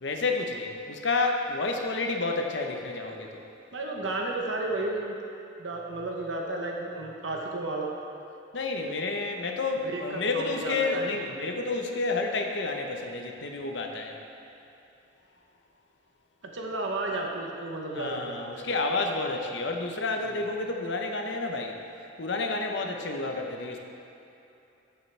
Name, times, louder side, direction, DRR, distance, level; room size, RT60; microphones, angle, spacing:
voice 1, 0.0-3.4 8.5-14.2 17.9-21.7 22.2-23.8, left 3 dB, 65° left, 3 dB, 0.9 m, -30 dB
voice 2, 3.7-5.2 5.6-7.9 9.8-11.5 16.4-18.7 20.2-20.4, right 2 dB, 75° right, 0 dB, 1.0 m, -33 dB
14.5 x 6.9 x 3.4 m, 2.8 s
head